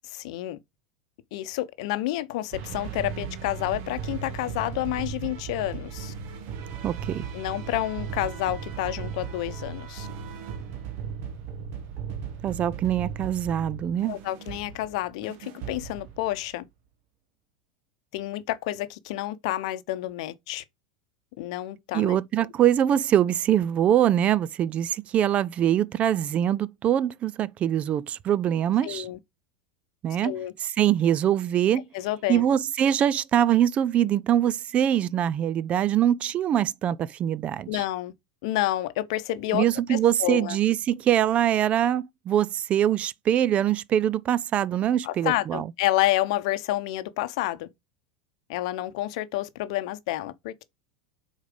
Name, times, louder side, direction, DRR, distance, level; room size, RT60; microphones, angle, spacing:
voice 1, 0.0-0.6 1.3-6.1 7.3-10.1 14.1-16.6 18.1-20.6 21.4-22.5 28.8-29.2 30.2-30.5 31.9-32.4 37.7-38.1 38.4-40.6 45.0-47.7 48.5-50.6, left 15 dB, 70° left, 0.7 m, -29 dB
sound 1, 2.5-16.6, right 7 dB, 55° right, 1.2 m, -37 dB
voice 2, 6.8-7.2 12.4-14.2 21.9-29.1 30.0-31.8 32.3-37.8 39.5-45.7, right 10 dB, 35° right, 0.4 m, -23 dB
4.9 x 4.0 x 5.0 m
hypercardioid pair, 105°, 4 cm